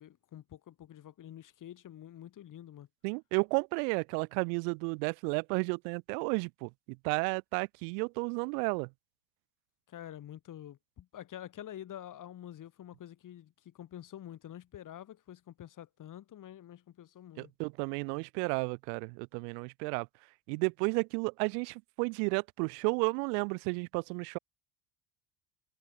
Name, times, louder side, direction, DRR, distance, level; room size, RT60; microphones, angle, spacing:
voice 1, 0.0-2.9 9.9-17.5, left 11 dB, 40° left, 5.9 m, -48 dB
voice 2, 3.0-6.7 7.0-8.9 17.4-20.1 20.5-24.4, right 40 dB or more, 80° right, 0.9 m, -32 dB
cardioid pair, 130°, 47 cm